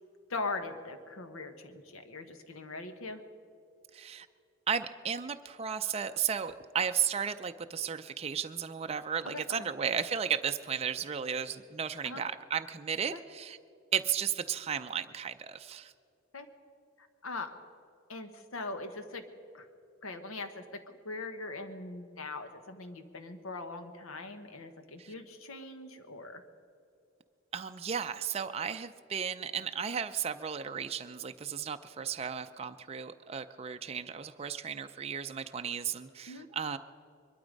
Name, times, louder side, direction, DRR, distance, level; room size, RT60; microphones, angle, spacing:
voice 1, 0.3-3.2 9.2-9.7 12.0-12.2 13.1-13.2 16.3-16.5 17.0-17.5 18.1-19.2 19.5-19.7 20.0-26.4 36.3-36.5, left 3 dB, 85° left, 8 dB, 1.2 m, -41 dB
voice 2, 3.9-4.3 4.7-13.6 13.9-15.9 25.0-25.1 27.5-36.8, right 7 dB, 30° right, 8 dB, 0.4 m, -34 dB
22.5 x 12.0 x 5.2 m, 2.6 s
head